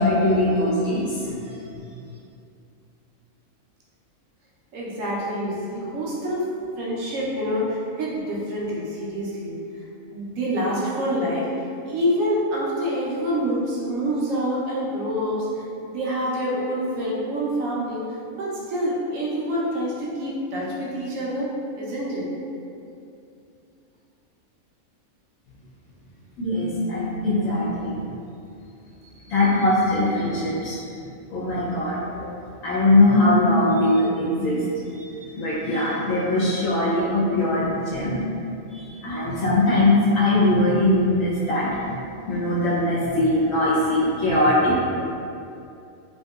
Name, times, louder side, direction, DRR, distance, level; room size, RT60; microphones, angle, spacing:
voice 1, 0.0-1.8 26.4-28.0 29.3-30.8 31.3-32.0 32.6-34.6 35.0-35.1 35.4-38.2 38.7-41.9 42.3-44.8, left 1 dB, 80° left, -8 dB, 1.0 m, -21 dB
voice 2, 4.7-6.4 6.8-9.6 10.1-11.5 11.8-18.0 18.3-21.5 21.8-22.3, equal, 80° right, -5 dB, 1.0 m, -26 dB
2.9 x 2.7 x 2.2 m, 2.6 s
omnidirectional pair, 1.4 m